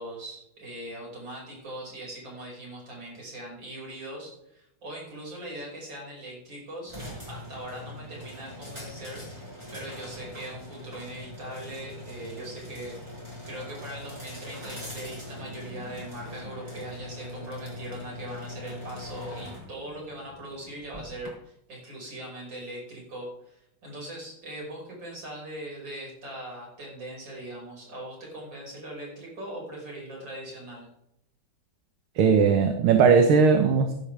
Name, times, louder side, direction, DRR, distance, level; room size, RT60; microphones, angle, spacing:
voice 1, 0.0-9.2 9.7-23.6 23.8-30.9, right 1 dB, 60° right, -2 dB, 6.3 m, -40 dB
sound 1, 6.9-21.3, left 1 dB, 10° right, 5.4 m, -42 dB
voice 2, 32.2-33.9, right 5 dB, 75° right, 5 dB, 1.9 m, -19 dB
15.5 x 11.0 x 3.4 m, 0.81 s
omnidirectional pair, 2.3 m